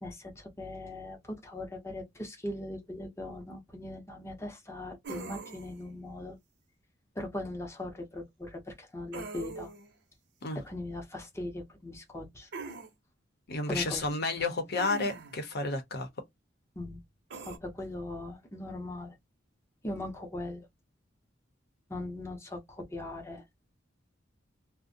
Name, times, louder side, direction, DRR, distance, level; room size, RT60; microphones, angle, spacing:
voice 1, 0.0-6.4 7.1-9.7 10.5-12.5 13.7-14.1 16.8-17.0 17.4-19.2 19.8-20.7 21.9-23.4, left 1 dB, 15° left, 0.6 m, -40 dB
sound 1, 5.0-5.8 9.1-9.9 12.5-12.9 14.8-15.4 17.3-17.6, right 4 dB, 60° right, 0.7 m, -42 dB
voice 2, 13.5-16.1, left 3 dB, 55° left, 0.7 m, -31 dB
2.5 x 2.1 x 2.6 m
head